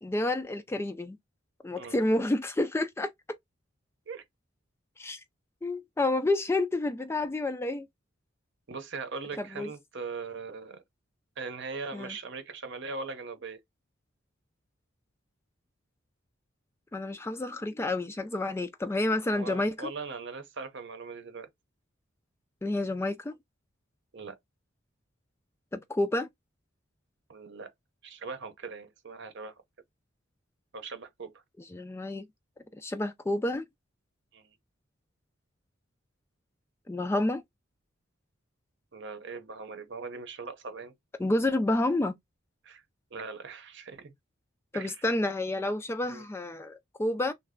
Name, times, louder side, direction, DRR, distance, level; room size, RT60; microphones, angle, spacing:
voice 1, 0.0-1.2 1.6-3.1 5.0-5.2 5.6-7.9 9.4-9.7 11.9-12.1 16.9-19.9 22.6-23.3 25.7-26.3 31.7-32.2 32.7-33.7 36.9-37.4 41.2-42.1 44.7-47.3, left 2 dB, 15° left, 0.3 m, -29 dB
voice 2, 8.7-10.8 11.4-13.6 19.3-21.5 24.1-24.4 27.3-27.7 28.0-29.5 30.7-31.4 34.3-34.5 38.9-40.9 42.6-42.8 43.1-44.1 44.7-45.0 46.0-46.2, right 4 dB, 65° right, 0.8 m, -40 dB
3.2 x 2.1 x 3.6 m
head